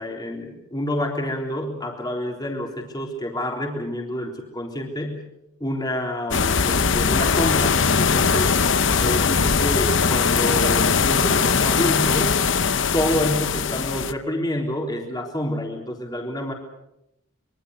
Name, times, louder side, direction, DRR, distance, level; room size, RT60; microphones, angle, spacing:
voice 1, 0.0-5.2 5.6-8.5 9.0-12.4 12.9-16.5, left 1 dB, 20° left, 1 dB, 3.6 m, -28 dB
sound 1, 6.3-14.1, left 5 dB, 60° left, 0.9 m, -20 dB
25.5 x 23.5 x 6.6 m, 0.84 s
head